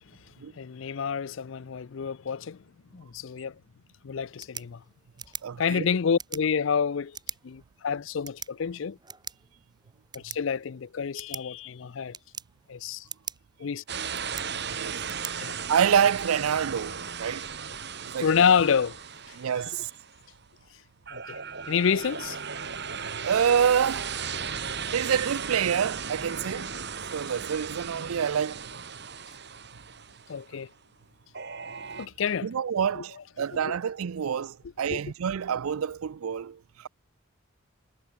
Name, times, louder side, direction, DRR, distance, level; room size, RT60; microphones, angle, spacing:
voice 1, 0.5-2.6 2.9-3.5 4.0-4.8 5.6-7.2 7.4-9.0 10.1-12.2 12.7-13.0 13.6-13.8 15.4-15.6 18.2-19.0 21.1-21.4 21.7-22.4 30.3-30.7 32.0-32.5 32.9-33.0 33.6-33.7 34.9-35.0, left 6 dB, 65° left, 0.5 m, -28 dB
sound 1, 4.2-16.2, right 7 dB, 20° right, 3.2 m, -45 dB
voice 2, 5.4-5.9 14.8-15.0 15.7-17.5 18.0-18.3 19.4-19.9 23.2-24.3 24.9-26.7 27.1-28.7 32.4-36.9, right 7 dB, 90° right, 0.5 m, -27 dB
sound 2, 13.9-20.3 21.1-30.4 31.3-32.1, right 6 dB, 55° right, 4.0 m, -36 dB
head